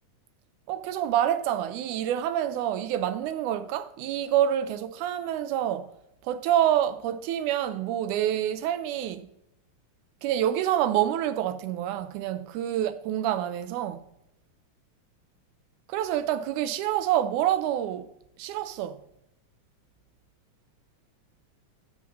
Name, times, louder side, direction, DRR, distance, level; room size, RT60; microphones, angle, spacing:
voice 1, 0.7-5.9 6.2-9.3 10.2-14.0 15.9-18.1 18.4-19.0, right 11 dB, 80° right, 2.1 m, -27 dB
13.5 x 8.3 x 2.7 m
omnidirectional pair, 3.7 m